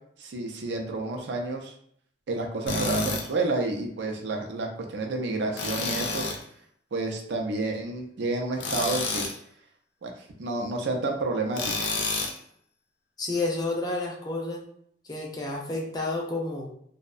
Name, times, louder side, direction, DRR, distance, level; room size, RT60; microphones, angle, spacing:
voice 1, 0.2-1.7 2.3-6.2 6.9-9.3 10.0-10.1 10.4-11.6, right 2 dB, 75° right, 2 dB, 0.4 m, -30 dB
Tools, 2.7-3.3 5.6-6.4 8.6-9.4 11.5-12.4, left 3 dB, 85° left, 0.5 m, -29 dB
voice 2, 13.2-14.6 15.1-16.7, left 2 dB, 20° left, -1 dB, 0.4 m, -30 dB
2.6 x 2.1 x 2.4 m, 0.68 s
head